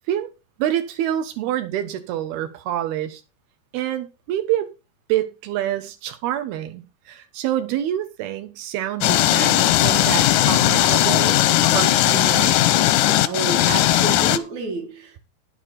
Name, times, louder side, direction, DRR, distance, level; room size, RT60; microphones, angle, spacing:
voice 1, 0.6-3.2 3.7-4.7 5.1-12.7, right 12 dB, 85° right, 3.1 m, -27 dB
sound 1, 9.0-14.4, left 14 dB, 80° left, 1.8 m, -18 dB
voice 2, 13.3-15.2, right 3 dB, 60° right, 2.5 m, -29 dB
10.0 x 9.4 x 4.2 m
omnidirectional pair, 4.3 m